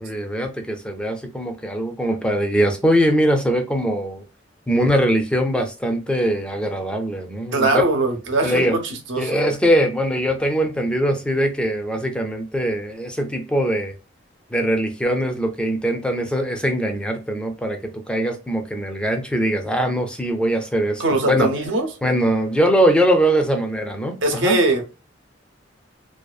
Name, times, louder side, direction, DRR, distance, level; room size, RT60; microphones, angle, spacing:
voice 1, 0.0-4.2 4.7-7.8 8.4-8.8 9.2-13.9 14.5-21.5 22.0-24.6, equal, 5° left, 0.4 m, -21 dB
voice 2, 7.5-9.3 21.0-21.9 24.2-24.8, right 2 dB, 85° right, 0.7 m, -21 dB
2.6 x 2.3 x 2.3 m
head